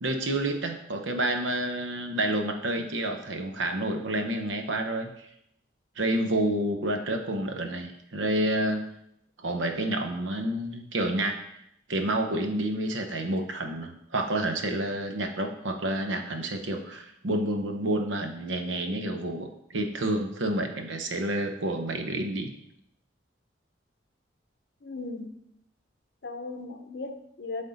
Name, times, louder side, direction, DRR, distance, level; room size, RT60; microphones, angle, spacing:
voice 1, 0.0-5.1 6.0-8.8 9.4-11.4 11.9-19.5 19.7-22.5, right 1 dB, 85° right, 0.8 m, -29 dB
voice 2, 24.8-25.5 26.2-27.6, left 3 dB, 60° left, 0.6 m, -37 dB
7.7 x 3.6 x 4.0 m
head